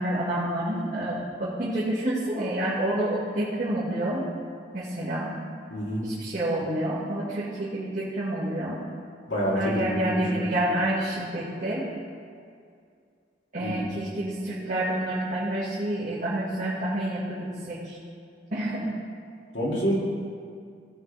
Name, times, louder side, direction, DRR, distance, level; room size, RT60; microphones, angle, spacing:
voice 1, 0.0-4.2 4.7-5.3 6.0-8.8 9.5-11.8 13.5-18.0 18.5-18.9, right 1 dB, 45° right, -10 dB, 1.8 m, -28 dB
voice 2, 5.7-6.0 9.3-10.5 13.6-13.9 19.5-19.9, equal, 85° left, -5 dB, 2.6 m, -28 dB
16.0 x 7.3 x 3.4 m, 2.3 s
head